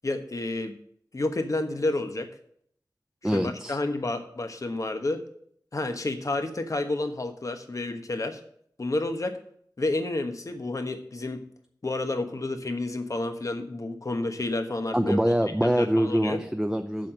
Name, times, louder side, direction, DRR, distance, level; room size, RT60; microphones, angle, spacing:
voice 1, 0.0-0.7 1.1-2.3 3.3-5.2 5.7-8.4 8.8-9.3 9.8-11.4 11.8-15.2 15.6-16.4, left 2 dB, 50° left, 7 dB, 1.2 m, -30 dB
voice 2, 3.2-3.8 14.9-17.1, equal, 5° right, 7 dB, 0.5 m, -24 dB
7.5 x 5.7 x 7.5 m, 0.65 s
wide cardioid pair, 80°, 7 cm